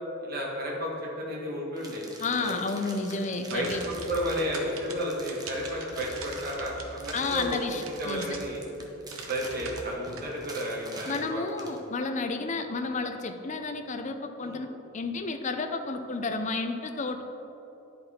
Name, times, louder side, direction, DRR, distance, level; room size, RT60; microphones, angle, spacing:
voice 1, 0.2-2.1 2.4-2.6 3.5-7.6 8.0-8.6 9.3-11.4 14.4-14.6, equal, 45° right, -3 dB, 1.4 m, -32 dB
sound 1, 1.8-11.8, right 2 dB, 20° right, 0.9 m, -46 dB
voice 2, 2.2-3.8 7.1-8.4 11.1-17.2, left 3 dB, 35° left, 7 dB, 0.5 m, -31 dB
sound 2, 3.5-8.7 9.1-10.2, right 3 dB, 90° right, 1.0 m, -42 dB
10.5 x 5.2 x 4.3 m, 3.0 s
head